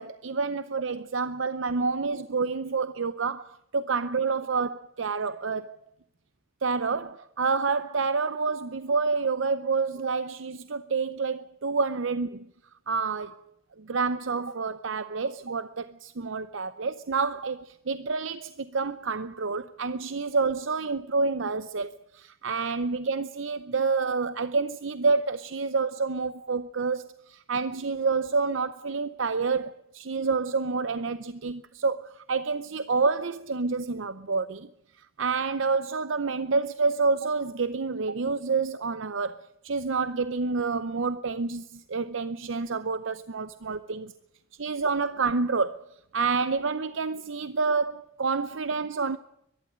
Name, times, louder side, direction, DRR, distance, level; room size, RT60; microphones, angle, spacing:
voice 1, 0.0-5.8 6.6-12.5 12.9-13.4 13.8-34.7 35.0-44.1 44.6-45.9 46.1-49.2, right 4 dB, 70° right, 0.7 m, -28 dB
23.0 x 12.0 x 9.9 m
head